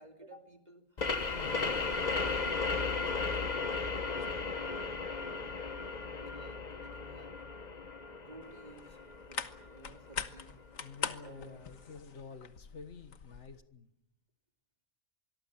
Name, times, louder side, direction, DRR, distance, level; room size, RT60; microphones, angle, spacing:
voice 1, 0.0-1.8 2.5-5.1 5.9-7.4 8.2-9.0 9.3-10.5 11.2-11.6, right 1 dB, 30° right, 5 dB, 2.8 m, -54 dB
sound 1, 1.0-10.3, left 4 dB, 35° left, 1.2 m, -35 dB
voice 2, 1.3-1.8 10.8-13.9, left 5 dB, 60° left, 10 dB, 1.7 m, -49 dB
sound 2, 8.4-13.6, left 6 dB, 80° left, 1.7 m, -43 dB
25.0 x 22.5 x 7.3 m, 0.80 s
omnidirectional pair, 1.4 m